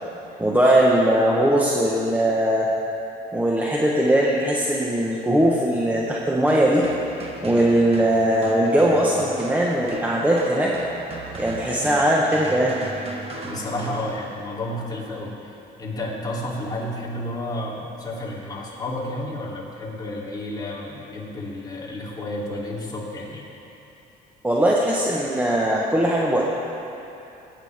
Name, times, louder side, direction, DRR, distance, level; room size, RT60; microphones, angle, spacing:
voice 1, 0.4-2.7 3.3-6.9 7.4-10.7 11.4-12.8 24.4-26.4, right 1 dB, 10° right, -4 dB, 1.3 m, -20 dB
sound 1, 6.5-14.6, right 3 dB, 35° right, 1.6 m, -37 dB
voice 2, 13.4-23.4, left 1 dB, 25° left, -6 dB, 3.3 m, -31 dB
21.5 x 9.8 x 3.6 m, 3.0 s
cardioid pair, 110°, 17 cm